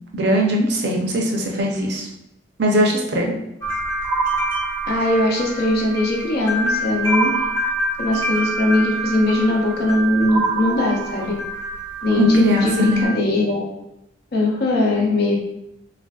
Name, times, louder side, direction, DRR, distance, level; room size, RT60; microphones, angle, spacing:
voice 1, 0.1-2.1 2.6-3.3 12.2-13.1, equal, 65° right, 0 dB, 0.6 m, -19 dB
sound 1, 3.6-13.0, right 1 dB, 20° left, 0.8 m, -27 dB
sound 2, 4.0-5.3 7.0-8.3 10.3-11.5, right 4 dB, 15° right, 0.6 m, -26 dB
voice 2, 4.9-7.3 8.0-11.3 12.0-13.6 14.3-15.4, left 2 dB, 60° left, -1 dB, 0.7 m, -20 dB
3.3 x 2.5 x 2.3 m, 0.86 s
head